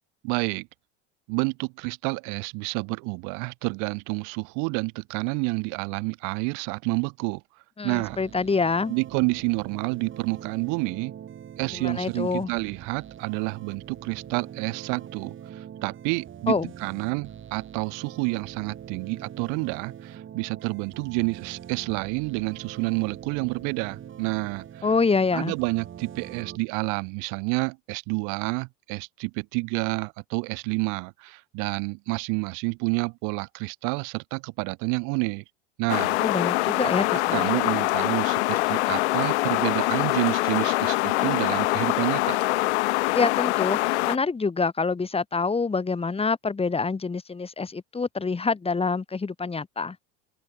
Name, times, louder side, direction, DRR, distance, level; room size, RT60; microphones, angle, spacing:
voice 1, 0.2-0.7 1.3-7.4 7.8-8.2 8.9-11.1 11.6-24.8 25.3-35.4 35.8-36.2 37.1-42.4, right 33 dB, 60° right, 1.1 m, -29 dB
voice 2, 7.8-9.0 11.7-12.5 16.5-16.7 24.8-25.5 36.2-37.6 43.1-50.0, left 4 dB, 15° left, 4.0 m, -26 dB
sound 1, 7.9-26.6, right 9 dB, 35° right, 6.5 m, -43 dB
sound 2, 35.9-44.2, left 21 dB, 80° left, 1.9 m, -24 dB
open air
supercardioid pair, 105°, 34 cm